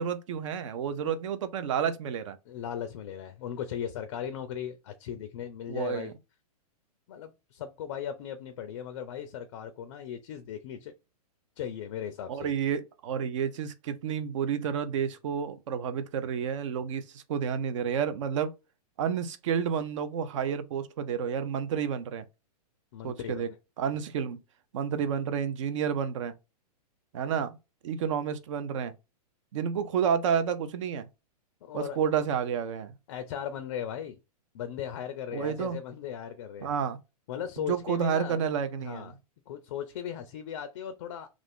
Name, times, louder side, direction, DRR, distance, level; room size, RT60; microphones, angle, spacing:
voice 1, 0.0-2.4 5.7-6.1 12.3-18.5 19.0-22.2 23.0-23.5 23.8-24.4 24.7-26.3 27.1-27.6 27.8-28.9 29.5-31.1 31.7-32.9 35.3-35.8 36.6-37.0 37.6-39.1, right 7 dB, 50° right, 0.5 m, -30 dB
voice 2, 2.5-6.1 7.1-10.9 11.6-12.5 22.9-23.6 31.6-32.0 33.1-34.2 34.5-36.7 37.3-38.4 38.8-39.1 39.5-41.3, left 9 dB, 45° left, 0.4 m, -37 dB
2.4 x 2.4 x 3.4 m
hypercardioid pair, 155°, 20 cm